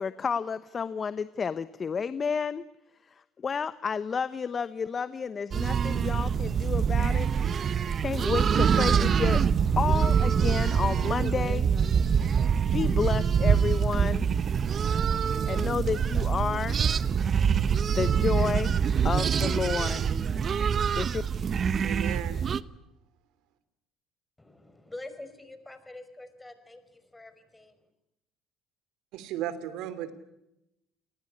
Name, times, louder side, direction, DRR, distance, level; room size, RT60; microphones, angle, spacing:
voice 1, 0.0-2.6 3.1-7.3 8.0-9.4 9.8-11.7 12.7-14.3 15.5-16.8 17.9-18.7 19.0-20.0 20.9-21.2, left 6 dB, 40° left, 14 dB, 1.0 m, -31 dB
sound 1, 5.5-22.6, right 7 dB, 45° right, 1.0 m, -25 dB
voice 2, 21.8-22.4 29.1-30.1, right 11 dB, 70° right, 13 dB, 2.9 m, -35 dB
voice 3, 24.4-27.8, left 2 dB, 15° left, 11 dB, 5.4 m, -46 dB
27.5 x 20.0 x 9.9 m, 0.88 s
hypercardioid pair, 70°, 0 cm